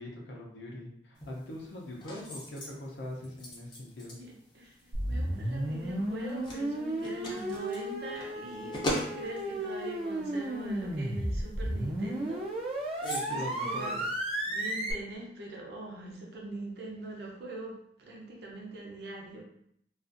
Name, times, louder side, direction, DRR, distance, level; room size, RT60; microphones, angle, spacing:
voice 1, 0.0-4.2 13.0-14.0, left 1 dB, 75° left, -2 dB, 0.6 m, -41 dB
sound 1, 1.1-14.9, equal, 25° left, 0.5 m, -43 dB
voice 2, 4.1-14.0 14.4-19.4, right 2 dB, 65° right, -2 dB, 0.7 m, -43 dB
sound 2, 4.9-14.9, right 1 dB, 30° right, 0.3 m, -34 dB
2.4 x 2.4 x 2.5 m, 0.71 s
head